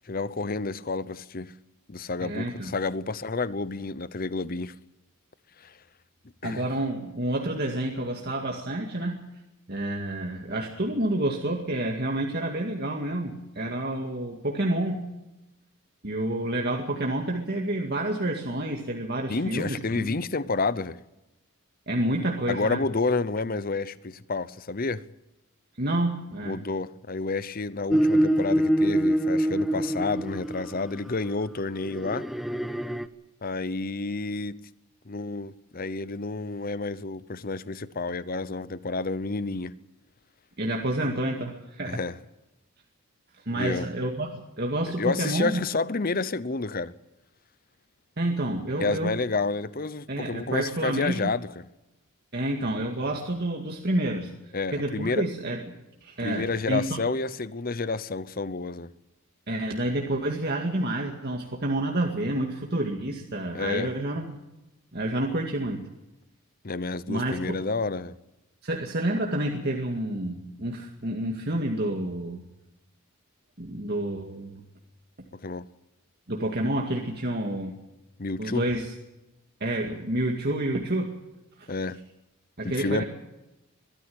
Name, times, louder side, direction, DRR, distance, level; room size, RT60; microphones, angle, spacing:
voice 1, 0.1-1.5 1.9-4.7 5.6-5.7 6.4-6.7 19.3-21.0 22.5-25.0 26.4-32.3 33.4-34.6 35.1-39.7 41.8-42.2 43.5-43.9 45.0-46.9 48.8-51.7 54.5-55.3 56.2-58.9 63.5-63.9 66.6-68.2 75.3-75.7 78.2-78.7 81.7-82.0 82.6-83.0, left 3 dB, 40° left, 0.8 m, -30 dB
voice 2, 2.2-2.7 6.4-9.2 9.7-15.0 16.0-20.2 21.9-22.8 25.8-26.6 40.6-42.0 43.5-45.6 48.2-49.1 50.1-51.3 52.3-55.6 56.0-57.0 59.5-64.4 64.9-65.9 67.1-67.6 68.6-72.4 73.6-74.6 76.3-77.7 78.4-78.9 79.6-81.2 81.6-81.7 82.6-83.0, right 1 dB, 45° right, 2.1 m, -29 dB
sound 1, 27.9-30.8 31.8-33.1, equal, ahead, 0.8 m, -24 dB
22.5 x 14.0 x 8.7 m
head